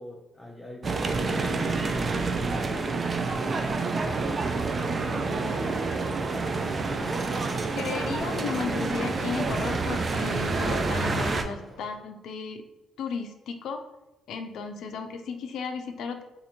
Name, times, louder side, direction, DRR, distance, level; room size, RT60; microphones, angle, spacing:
voice 1, 0.0-5.6, left 1 dB, 15° left, 0 dB, 0.5 m, -44 dB
sound 1, 0.8-11.4, right 3 dB, 40° right, 0.4 m, -28 dB
sound 2, 6.8-12.0, equal, ahead, 1.2 m, -46 dB
voice 2, 7.8-12.6 13.0-13.8 14.3-16.2, left 5 dB, 75° left, 6 dB, 0.4 m, -34 dB
2.8 x 2.5 x 4.2 m, 0.99 s
cardioid pair, 90°, 0 cm